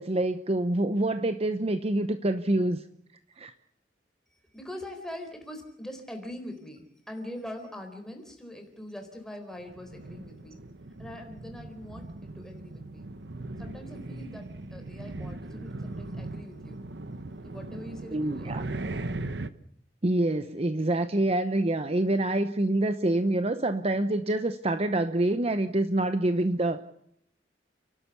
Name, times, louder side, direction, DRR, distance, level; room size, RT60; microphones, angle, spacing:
voice 1, 0.0-2.8 3.4-3.5 18.1-18.6 20.0-26.8, right 1 dB, 35° right, 10 dB, 0.8 m, -26 dB
voice 2, 4.5-10.6 11.0-13.1 13.6-16.8 17.4-19.1, left 1 dB, 5° left, 4 dB, 4.1 m, -43 dB
sound 1, 9.6-19.5, right 2 dB, 75° right, 1.0 m, -39 dB
29.5 x 12.0 x 8.3 m, 0.72 s
head